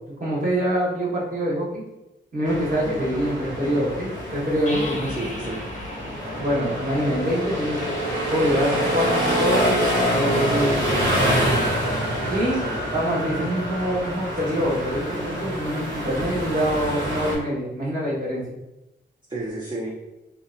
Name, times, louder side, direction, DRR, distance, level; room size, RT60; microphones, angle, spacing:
voice 1, 0.2-1.8 2.3-5.1 6.4-8.0 8.3-9.7 10.1-11.4 12.3-12.6 12.9-18.6, equal, 45° right, -6 dB, 1.2 m, -25 dB
sound 1, 2.5-17.4, equal, 80° right, 0.9 m, -26 dB
voice 2, 3.3-3.9 5.1-5.7 12.4-12.9 19.3-20.0, right 1 dB, 25° right, -4 dB, 0.6 m, -33 dB
sound 2, 4.7-8.3, left 1 dB, 40° left, 0.7 m, -38 dB
2.7 x 2.2 x 2.5 m, 0.95 s
cardioid pair, 50°, 19 cm